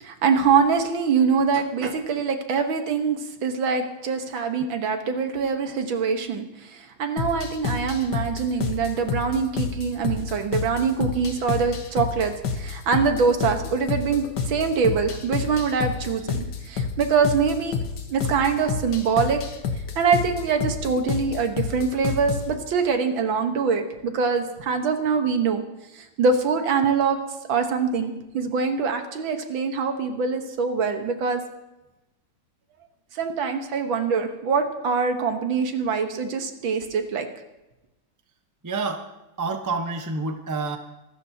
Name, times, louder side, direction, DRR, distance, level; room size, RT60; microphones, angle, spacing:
voice 1, 0.0-17.8 18.1-19.4 20.0-25.6 25.9-27.2 27.5-31.4 33.1-37.3, right 5 dB, 75° right, 6 dB, 2.0 m, -24 dB
sound 1, 7.2-22.5, left 5 dB, 60° left, 1.6 m, -29 dB
voice 2, 38.6-39.0 39.4-40.8, right 3 dB, 20° right, 5 dB, 0.5 m, -28 dB
25.0 x 13.0 x 2.8 m, 0.99 s
omnidirectional pair, 2.2 m